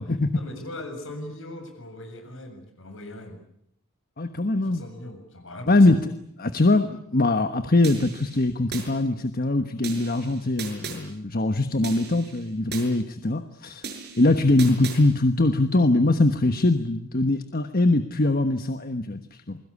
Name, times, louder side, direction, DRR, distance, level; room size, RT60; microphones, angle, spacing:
voice 1, 0.0-3.4 4.6-6.0, left 1 dB, 65° left, 6 dB, 7.2 m, -40 dB
voice 2, 4.2-4.8 5.7-6.1 6.4-13.8 14.2-19.6, left 2 dB, 45° left, 9 dB, 1.3 m, -22 dB
sound 1, 7.8-8.9 9.8-11.0 11.8-12.9 13.8-15.0, right 5 dB, 50° right, 6.7 m, -37 dB
28.5 x 22.0 x 8.5 m, 0.72 s
head